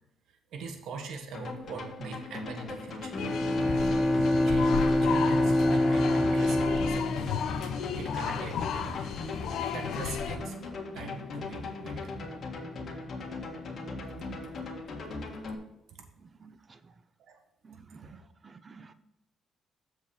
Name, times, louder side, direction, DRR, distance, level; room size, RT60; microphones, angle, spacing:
voice 1, 0.3-3.2 3.7-4.1 4.4-9.0 9.7-10.6 10.9-12.3 12.8-12.9 13.2-13.3 14.4-14.7 15.9-16.0 17.2-17.4 17.7-18.2, right 4 dB, 80° right, 1.5 m, -42 dB
sound 1, 1.3-15.5, left 3 dB, 55° left, 1.8 m, -39 dB
Bowed string instrument, 3.1-8.3, left 1 dB, ahead, 1.3 m, -26 dB
sound 2, 3.2-10.4, left 8 dB, 80° left, 0.7 m, -34 dB
voice 2, 16.2-16.8 17.6-18.1 18.4-18.9, right 4 dB, 35° right, 0.7 m, -53 dB
7.6 x 4.7 x 6.5 m
cardioid pair, 90°, 0 cm